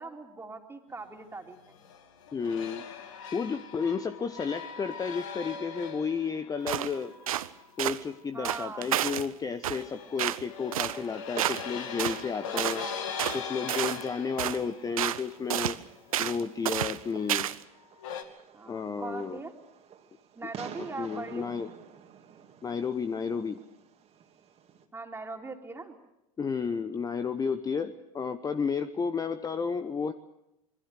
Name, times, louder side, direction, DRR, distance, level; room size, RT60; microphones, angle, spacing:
voice 1, 0.0-1.8 8.3-8.9 12.4-13.1 18.5-19.5 20.4-21.6 24.9-26.0, right 3 dB, 15° right, 3 dB, 3.5 m, -41 dB
sound 1, 1.5-8.2 9.7-17.3 18.0-18.2, left 7 dB, 60° left, 2.6 m, -41 dB
voice 2, 2.3-2.8 3.3-7.1 7.8-12.9 13.3-15.8 16.2-17.5 18.7-19.4 20.4-20.5 20.8-21.7 22.6-23.6 26.4-30.1, left 5 dB, 20° left, 11 dB, 1.0 m, -32 dB
sound 2, 6.7-6.9 7.3-7.5 7.8-8.0 8.4-9.3 9.6-9.8 10.2-10.4 10.7-11.0 11.4-11.7 12.0-12.2 12.6-12.8 13.2-13.4 13.7-14.1 14.4-14.6 15.0-15.2 15.5-15.8 16.1-16.4 16.7-17.0 17.3-17.6, right 12 dB, 70° right, 0.9 m, -30 dB
Fireworks, 10.6-24.9, right 8 dB, 35° right, 2.7 m, -50 dB
26.0 x 22.5 x 6.6 m, 0.87 s
figure-of-eight pair, 80°, 19 cm